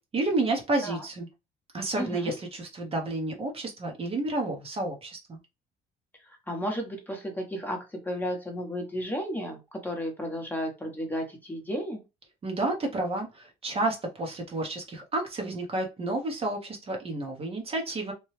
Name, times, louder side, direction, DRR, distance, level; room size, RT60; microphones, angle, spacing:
voice 1, 0.1-1.3 1.7-5.4 12.4-18.1, right 2 dB, 35° right, 2 dB, 0.9 m, -30 dB
voice 2, 2.0-2.3 6.5-7.8 8.0-12.0, equal, 10° left, 2 dB, 1.0 m, -33 dB
3.0 x 2.3 x 3.1 m, 0.25 s
cardioid pair, 110°, 17 cm